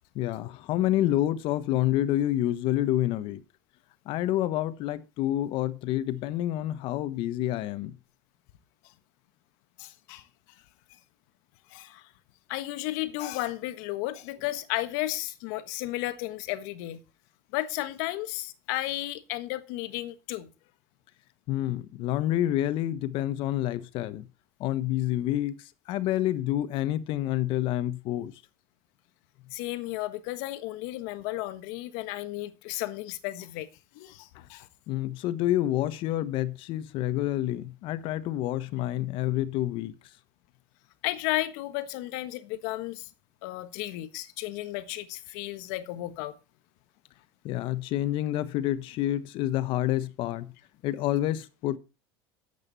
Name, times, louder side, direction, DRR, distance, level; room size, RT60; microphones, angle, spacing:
voice 1, 0.1-3.4 4.1-7.9 21.5-24.3 24.6-28.3 34.9-39.9 47.4-50.5 50.8-51.8, left 13 dB, 60° left, 1.2 m, -28 dB
voice 2, 9.8-10.2 11.7-12.1 12.5-17.0 17.5-20.5 29.5-33.7 33.9-34.7 41.0-43.1 43.4-46.3, left 16 dB, 80° left, 1.4 m, -33 dB
12.5 x 8.3 x 4.1 m
cardioid pair, 130°, 10 cm